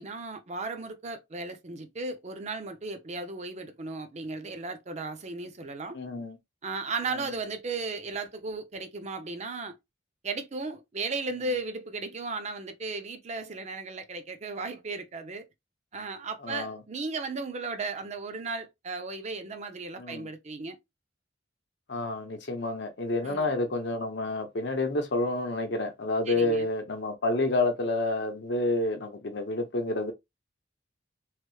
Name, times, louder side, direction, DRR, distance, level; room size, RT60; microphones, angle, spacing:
voice 1, 0.0-6.0 6.6-9.7 10.2-15.4 15.9-20.8 23.2-23.5 26.3-26.7, right 3 dB, 35° right, 0.5 m, -35 dB
voice 2, 5.9-6.4 16.4-16.8 20.0-20.3 21.9-30.1, left 2 dB, 65° left, 0.8 m, -29 dB
3.1 x 2.0 x 3.0 m
head